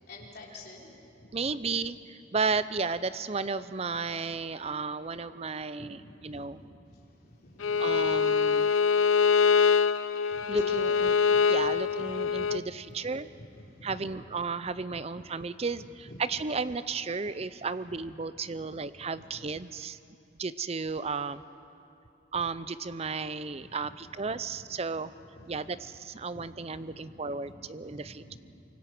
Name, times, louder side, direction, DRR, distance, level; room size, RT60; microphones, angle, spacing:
voice 1, 0.1-1.0 1.3-1.6 5.8-6.0 6.3-7.8 10.3-10.9 11.3-12.2 12.5-12.6 12.9-13.2 13.7-14.2 14.9-15.0 15.7-16.2 19.0-19.4 23.5-23.9 24.2-24.8 25.3-25.7 26.3-28.4, left 1 dB, 50° left, -2 dB, 3.7 m, -50 dB
voice 2, 1.3-6.6 7.8-8.7 10.5-11.2 11.5-13.3 13.8-20.0 20.4-21.4 22.3-25.1 25.5-28.4, right 4 dB, 30° right, 14 dB, 0.5 m, -33 dB
Bowed string instrument, 7.6-12.6, left 6 dB, 85° left, 0.6 m, -24 dB
25.0 x 24.5 x 6.1 m, 2.7 s
head